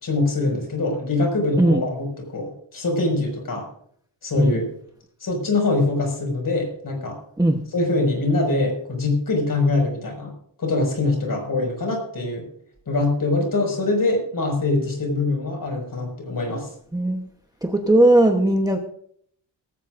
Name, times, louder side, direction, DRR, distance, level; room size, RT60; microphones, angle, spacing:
voice 1, 0.0-3.7 4.2-4.7 5.2-7.2 7.7-10.3 10.6-12.5 12.9-16.7, left 2 dB, 45° left, 2 dB, 5.6 m, -23 dB
voice 2, 16.9-17.3 17.6-18.8, right 1 dB, 10° right, 3 dB, 0.9 m, -18 dB
18.0 x 16.5 x 2.6 m, 0.63 s
wide cardioid pair, 175°, 45 cm